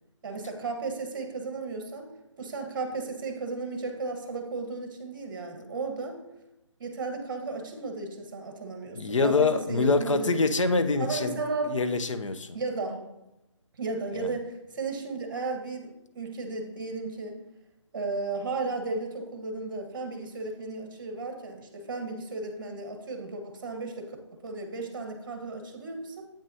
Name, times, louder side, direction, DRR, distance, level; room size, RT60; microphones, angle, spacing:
voice 1, 0.2-2.1 2.4-6.2 6.8-10.3 10.6-11.8 12.5-13.0 13.8-17.4 17.9-26.2, right 3 dB, 45° right, 4 dB, 1.3 m, -34 dB
voice 2, 8.9-11.4 11.7-12.6 14.1-14.4, left 3 dB, 80° left, 10 dB, 0.6 m, -25 dB
8.3 x 6.1 x 2.7 m, 0.92 s
hypercardioid pair, 160°, 16 cm